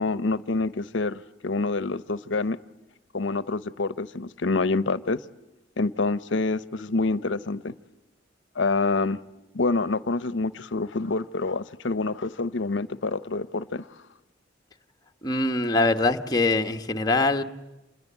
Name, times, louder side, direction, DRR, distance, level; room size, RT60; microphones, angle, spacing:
voice 1, 0.0-2.6 3.1-5.2 5.8-7.7 8.6-9.2 9.5-13.9, left 3 dB, 75° left, 0.8 m, -27 dB
voice 2, 15.2-17.4, left 2 dB, 20° left, 1.2 m, -23 dB
27.0 x 21.5 x 8.2 m
head